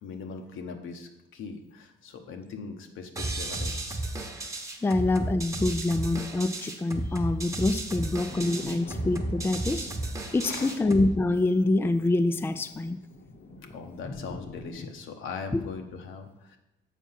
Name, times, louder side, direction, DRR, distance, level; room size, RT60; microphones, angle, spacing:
voice 1, 0.0-4.0 4.8-4.9 10.4-10.8 13.3-13.4 13.7-16.6, left 5 dB, 80° left, 4 dB, 1.1 m, -40 dB
sound 1, 3.2-11.2, right 1 dB, 15° right, 1.0 m, -33 dB
voice 2, 4.8-9.9 10.3-13.0 15.5-15.6, left 2 dB, 10° left, 10 dB, 0.4 m, -26 dB
sound 2, 8.3-14.9, left 2 dB, 50° left, 1.0 m, -44 dB
7.2 x 4.6 x 5.7 m, 0.93 s
cardioid pair, 90°, 20 cm